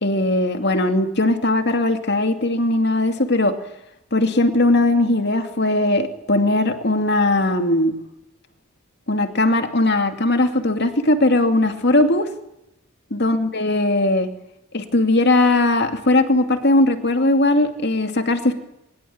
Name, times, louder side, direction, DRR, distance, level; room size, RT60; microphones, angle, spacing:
voice 1, 0.0-3.5 4.1-8.0 9.1-12.3 13.1-14.3 14.7-18.5, left 2 dB, 50° left, 7 dB, 2.6 m, -19 dB
24.0 x 21.5 x 8.8 m, 0.87 s
head